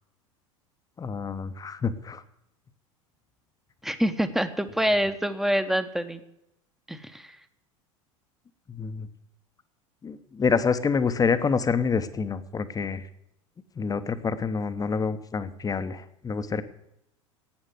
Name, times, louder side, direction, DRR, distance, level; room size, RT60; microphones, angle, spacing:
voice 1, 1.0-2.2 8.7-9.1 10.0-13.0 13.8-16.6, left 5 dB, 20° left, 12 dB, 0.9 m, -27 dB
voice 2, 3.8-6.2 6.9-7.4, equal, ahead, 10 dB, 1.0 m, -26 dB
11.5 x 8.7 x 9.3 m, 0.83 s
hypercardioid pair, 80°, 17 cm